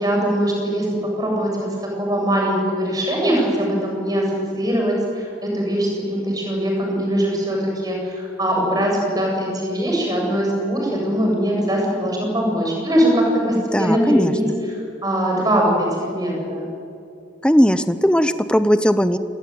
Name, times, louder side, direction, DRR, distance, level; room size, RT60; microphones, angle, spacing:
voice 1, 0.0-14.4 15.0-16.6, equal, 20° right, -1 dB, 8.0 m, -21 dB
voice 2, 13.6-14.5 17.4-19.2, equal, 5° left, 11 dB, 0.7 m, -18 dB
28.0 x 21.0 x 9.4 m, 2.5 s
head